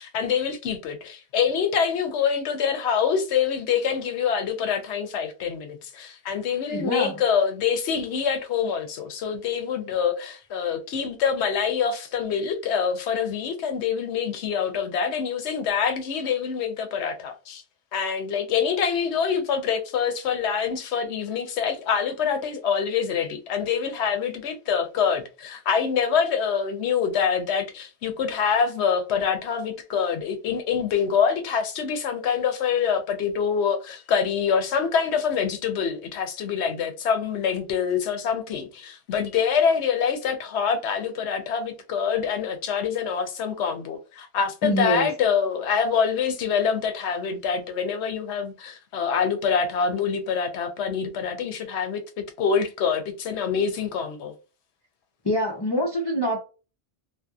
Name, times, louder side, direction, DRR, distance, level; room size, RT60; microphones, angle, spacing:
voice 1, 0.0-17.6 17.9-52.0 52.4-54.3, left 7 dB, 85° left, 0.9 m, -25 dB
voice 2, 6.7-7.1 44.6-45.1 55.2-56.4, equal, 35° left, 0.4 m, -25 dB
2.7 x 2.1 x 2.3 m
omnidirectional pair, 1.1 m